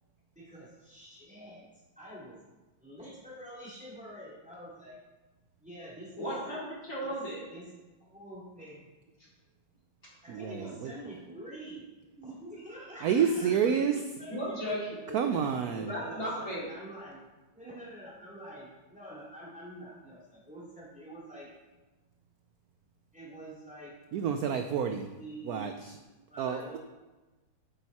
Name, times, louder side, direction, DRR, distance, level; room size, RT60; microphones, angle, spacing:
voice 1, 0.3-1.7 2.0-2.4 2.8-5.0 5.6-6.3 7.0-7.2 7.5-7.7 8.0-8.9 10.2-11.8 12.2-14.6 15.2-15.5 15.8-17.3 17.5-21.5 23.1-23.9 25.2-25.8 26.3-26.8, right 1 dB, 5° right, -6 dB, 3.0 m, -46 dB
voice 2, 6.2-7.4 14.3-15.3 15.8-16.7, equal, 40° left, -8 dB, 4.3 m, -35 dB
voice 3, 10.3-10.9 13.0-14.0 15.1-15.9 24.1-25.1 25.4-26.0 26.4-26.8, right 7 dB, 70° right, 7 dB, 0.9 m, -29 dB
9.1 x 8.9 x 4.2 m, 1.2 s
omnidirectional pair, 2.1 m